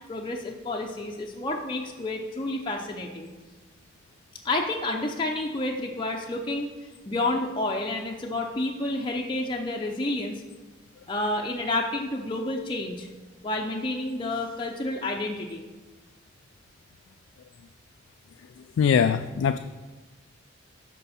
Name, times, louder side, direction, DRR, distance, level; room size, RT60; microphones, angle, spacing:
voice 1, 0.1-3.3 4.4-10.4 11.1-13.1 13.4-15.6, left 2 dB, 25° left, 0 dB, 0.5 m, -30 dB
voice 2, 18.8-19.6, left 7 dB, 80° left, 9 dB, 0.3 m, -21 dB
12.5 x 4.6 x 4.2 m, 1.2 s
head